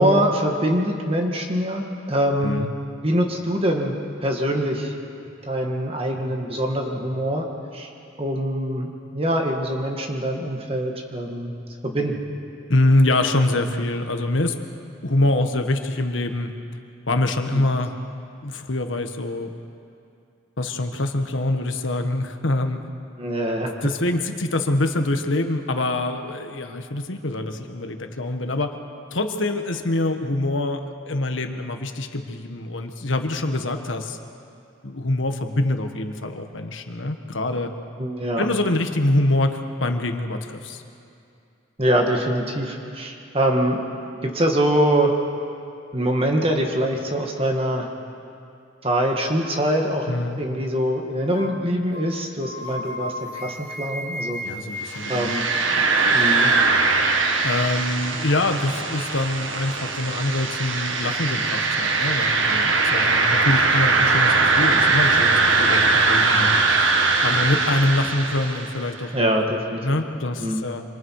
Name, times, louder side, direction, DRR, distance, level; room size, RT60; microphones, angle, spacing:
voice 1, 0.0-2.7 3.0-4.9 5.5-7.4 7.7-7.9 8.2-11.5 11.8-12.3 23.2-23.7 38.0-38.4 41.8-43.8 44.2-45.1 45.9-47.9 48.8-54.4 55.1-55.5 56.1-56.5 69.1-69.8 70.4-70.7, equal, 30° right, 2 dB, 1.9 m, -23 dB
voice 2, 12.7-14.6 15.0-16.5 17.1-17.9 18.4-19.5 20.6-22.8 23.8-28.7 29.1-34.2 34.8-37.7 38.4-40.8 50.1-50.4 54.4-55.3 57.4-66.9 67.2-69.5 69.8-70.8, left 2 dB, 75° left, 6 dB, 1.5 m, -24 dB
sound 1, 51.3-51.6 51.9-52.1 52.4-55.8, left 1 dB, 35° left, 2.2 m, -34 dB
sound 2, 54.9-68.8, right 3 dB, 75° right, 1.7 m, -21 dB
26.5 x 26.0 x 4.8 m, 2.5 s
head